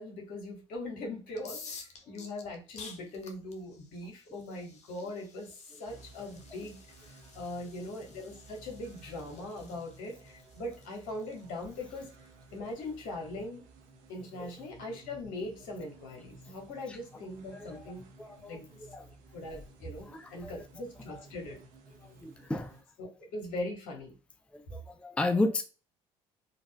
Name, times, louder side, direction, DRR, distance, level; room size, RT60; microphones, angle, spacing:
voice 1, 0.0-6.8 7.3-12.1 12.5-13.7 14.1-18.1 18.5-18.7 19.3-21.6 23.0-24.1, left 2 dB, 70° left, 1.2 m, -41 dB
sound 1, 1.3-13.1, left 4 dB, 50° left, 0.7 m, -52 dB
sound 2, 5.8-22.8, right 3 dB, 65° right, 0.8 m, -55 dB
voice 2, 6.2-6.7 14.4-14.6 16.9-17.0 17.5-17.9 18.2-18.6 18.9-19.1 20.0-20.7 21.0-21.6 22.0-22.8 24.5-25.6, left 2 dB, 5° left, 0.4 m, -35 dB
3.9 x 2.4 x 2.2 m
hypercardioid pair, 55°, 15 cm